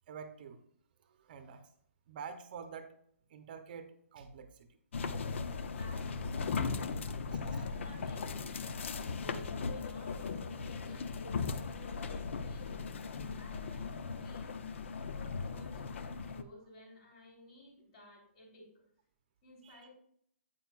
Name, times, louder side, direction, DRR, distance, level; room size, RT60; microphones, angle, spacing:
voice 1, 0.1-0.6 1.2-1.6 2.1-2.9 3.3-4.7 19.6-19.9, right 6 dB, 40° right, 8 dB, 0.8 m, -47 dB
sound 1, 4.9-16.4, left 5 dB, 60° left, 0.7 m, -38 dB
voice 2, 5.7-13.0 13.4-14.6 15.0-18.8 19.4-19.9, left 1 dB, 35° left, -1 dB, 3.7 m, -56 dB
9.2 x 8.7 x 2.5 m, 0.64 s
hypercardioid pair, 160°, 7 cm